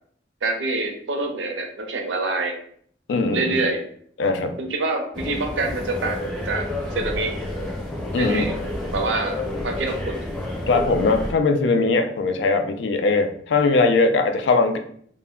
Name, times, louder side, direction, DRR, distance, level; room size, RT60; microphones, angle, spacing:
voice 1, 0.4-2.6 3.3-3.8 4.6-6.6 6.9-7.4 8.1-8.5 8.9-10.2, right 3 dB, 90° right, 3 dB, 0.5 m, -26 dB
voice 2, 3.1-3.6 4.2-4.6 8.1-8.5 10.7-14.8, left 3 dB, 75° left, 7 dB, 0.4 m, -20 dB
sound 1, 5.1-11.3, left 1 dB, 10° left, 0.7 m, -30 dB
2.1 x 2.1 x 3.5 m, 0.62 s
head